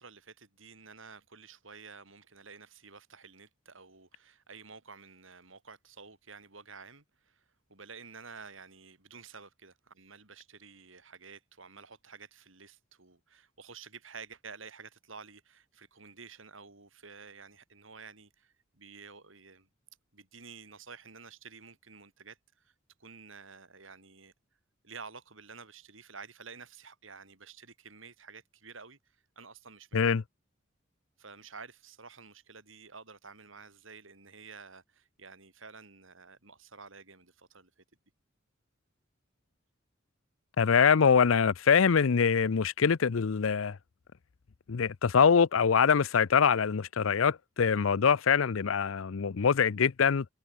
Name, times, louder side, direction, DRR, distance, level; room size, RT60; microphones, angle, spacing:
voice 1, 0.0-7.4 7.7-19.7 20.1-22.7 23.0-24.3 24.8-29.0 29.4-30.2 31.2-37.7, right 5 dB, 80° right, 4.3 m, -51 dB
voice 2, 40.6-43.8 44.7-50.3, left 6 dB, 90° left, 0.6 m, -24 dB
head